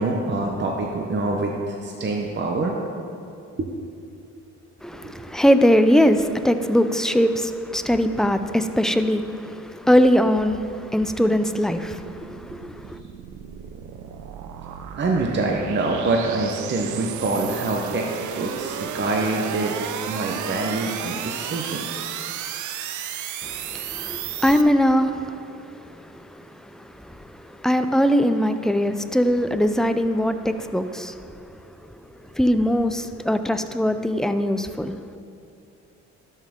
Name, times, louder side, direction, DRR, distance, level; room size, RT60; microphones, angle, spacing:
voice 1, 0.0-2.8 3.5-3.7 4.9-5.3 15.0-18.1 18.4-19.7 20.1-22.0, right 2 dB, 40° right, 0.9 m, -25 dB
voice 2, 4.8-13.0 23.4-25.4 26.2-26.4 26.7-31.2 32.4-35.0, equal, ahead, 0.4 m, -21 dB
sound 1, 10.8-24.6, right 9 dB, 75° right, 0.6 m, -34 dB
12.5 x 5.7 x 3.7 m
cardioid pair, 90°, 30 cm